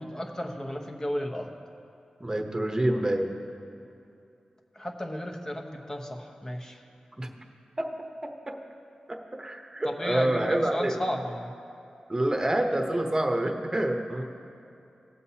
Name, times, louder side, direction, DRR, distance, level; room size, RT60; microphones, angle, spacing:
voice 1, 0.0-1.5 4.7-6.8 9.8-11.6, equal, 20° left, 2 dB, 1.0 m, -34 dB
voice 2, 2.2-3.3 7.2-7.3 7.8-7.9 8.5-8.6 9.1-11.0 12.1-14.2, right 1 dB, 25° right, 3 dB, 1.0 m, -27 dB
18.5 x 7.6 x 2.8 m, 2.6 s
wide cardioid pair, 70°, 2 cm